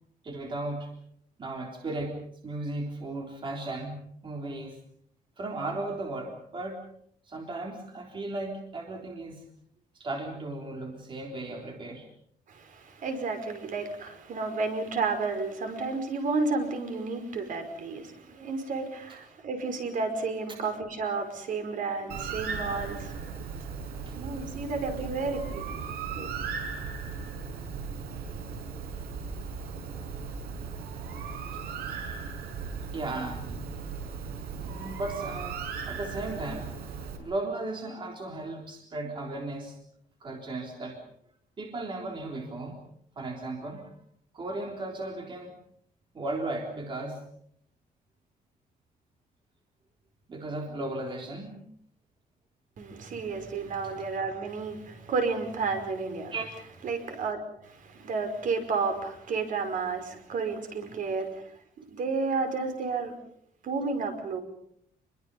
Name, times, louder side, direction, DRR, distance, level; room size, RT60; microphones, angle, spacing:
voice 1, 0.2-0.9 1.4-4.8 5.4-6.8 7.2-9.4 9.9-12.1 19.1-19.2 20.5-20.6 24.1-24.2 32.9-33.7 34.6-36.8 37.2-39.8 40.2-41.0 41.6-42.8 43.2-43.9 44.3-45.6 46.1-47.3 50.3-51.6 53.8-53.9 56.3-56.5, right 2 dB, 30° right, 1 dB, 3.8 m, -36 dB
voice 2, 12.5-23.2 24.2-25.8 26.2-26.3 52.8-56.3 56.8-63.1 63.6-64.4, right 4 dB, 55° right, 7 dB, 5.2 m, -32 dB
Bird, 22.1-37.2, right 5 dB, 85° right, 5.9 m, -37 dB
28.5 x 22.5 x 5.5 m, 0.69 s
cardioid pair, 140°, 16 cm